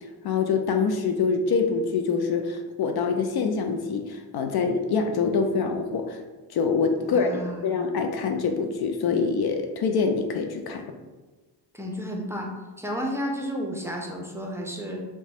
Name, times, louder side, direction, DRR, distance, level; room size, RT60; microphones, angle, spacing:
voice 1, 0.2-6.2 6.5-10.8, left 5 dB, 60° left, 5 dB, 0.5 m, -25 dB
voice 2, 7.0-7.7 11.7-12.5 12.8-15.0, equal, 5° right, -1 dB, 0.6 m, -32 dB
2.8 x 2.3 x 4.2 m, 1.2 s
cardioid pair, 70°, 44 cm